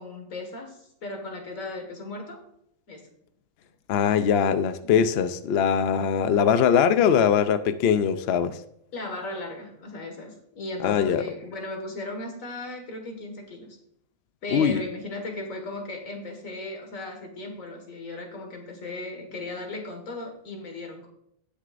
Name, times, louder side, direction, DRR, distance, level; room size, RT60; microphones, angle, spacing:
voice 1, 0.0-2.4 2.9-3.1 8.9-13.8 14.4-21.1, left 2 dB, 80° left, 3 dB, 2.1 m, -36 dB
voice 2, 3.9-8.6 10.8-11.2 14.5-14.8, left 7 dB, 60° left, 11 dB, 0.7 m, -21 dB
17.5 x 6.3 x 2.5 m, 0.74 s
omnidirectional pair, 1.4 m